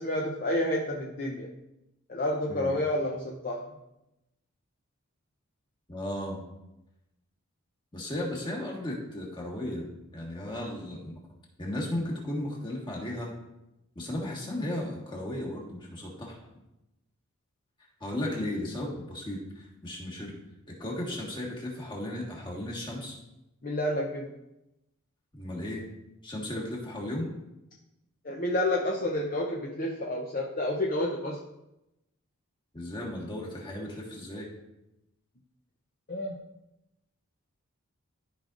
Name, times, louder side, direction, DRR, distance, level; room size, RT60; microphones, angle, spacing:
voice 1, 0.0-1.5 2.1-3.7 23.6-24.3 28.2-31.4 36.1-36.4, left 1 dB, 40° left, -1 dB, 0.7 m, -30 dB
voice 2, 5.9-6.4 7.9-11.2 11.6-13.3 13.9-16.4 18.0-20.4 20.7-23.1 25.3-25.8 26.2-27.3 32.7-34.5, left 1 dB, 20° left, -3 dB, 1.6 m, -35 dB
13.0 x 5.1 x 2.5 m, 0.92 s
head